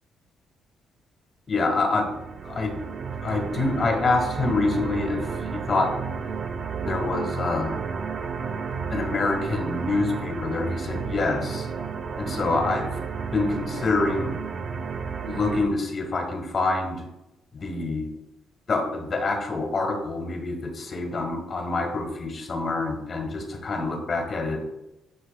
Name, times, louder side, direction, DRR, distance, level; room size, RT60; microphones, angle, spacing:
voice 1, 1.5-2.1 2.4-2.8 3.2-5.9 6.8-7.8 8.9-11.7 12.1-13.0 13.3-14.3 15.2-17.0 17.5-18.1 18.7-24.6, left 3 dB, 45° left, 4 dB, 1.3 m, -26 dB
sound 1, 1.9-15.7, right 5 dB, 50° right, 0.4 m, -32 dB
10.0 x 4.3 x 2.2 m, 0.93 s
cardioid pair, 90°, 0 cm